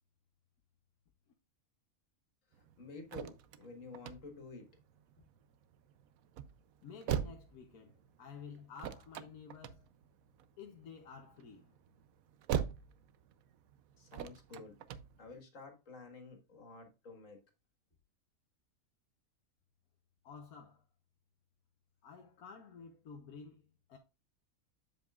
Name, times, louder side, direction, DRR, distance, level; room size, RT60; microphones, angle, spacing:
sound 1, 2.5-15.4, right 9 dB, 75° right, 1.1 m, -43 dB
voice 1, 2.8-4.7 14.0-14.8 15.2-17.4, left 3 dB, 60° left, 2.1 m, -50 dB
voice 2, 6.8-9.9 10.6-11.8 20.2-20.8 22.0-24.0, left 6 dB, 85° left, 1.4 m, -52 dB
7.6 x 7.6 x 2.4 m
omnidirectional pair, 1.5 m